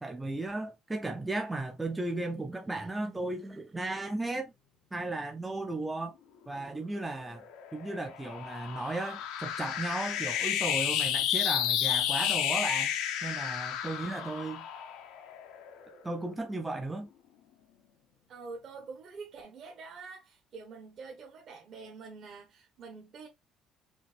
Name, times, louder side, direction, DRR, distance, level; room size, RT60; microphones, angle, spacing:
voice 1, 0.0-4.5 4.9-6.1 6.5-7.4 7.7-12.9 13.2-14.7 16.0-17.1, right 2 dB, 10° right, 0.4 m, -35 dB
sound 1, 7.3-16.0, left 10 dB, 90° left, 0.7 m, -31 dB
voice 2, 18.3-23.3, right 4 dB, 45° right, 1.1 m, -46 dB
5.1 x 2.6 x 3.3 m
cardioid pair, 150°, 0 cm